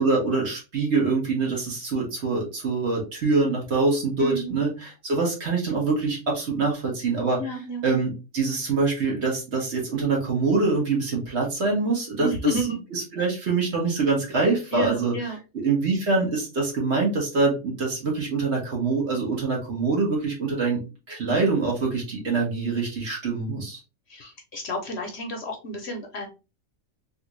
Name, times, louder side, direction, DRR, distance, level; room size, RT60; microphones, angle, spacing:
voice 1, 0.0-7.4 7.8-12.6 12.9-15.1 15.5-20.8 21.1-23.8, right 3 dB, 55° right, -2 dB, 1.5 m, -24 dB
voice 2, 4.2-4.5 7.4-7.8 12.2-12.8 14.7-15.4 24.1-26.3, equal, 60° left, 3 dB, 0.8 m, -30 dB
3.2 x 2.5 x 3.0 m, 0.29 s
omnidirectional pair, 1.4 m